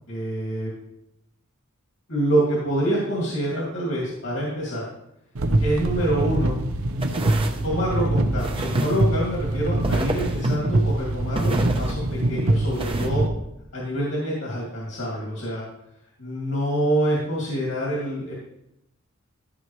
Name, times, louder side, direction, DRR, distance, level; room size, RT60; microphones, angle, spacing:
voice 1, 0.1-0.7 2.1-4.8 5.6-6.6 7.6-13.3 13.7-15.6 16.2-18.3, right 1 dB, 70° left, -4 dB, 2.5 m, -26 dB
sound 1, 5.3-13.3, right 1 dB, 80° right, 0.8 m, -24 dB
sound 2, 7.0-7.6 8.4-9.0 9.8-10.5 11.3-11.9 12.7-13.1, right 2 dB, 25° right, 0.8 m, -30 dB
14.0 x 6.0 x 3.2 m, 0.83 s
head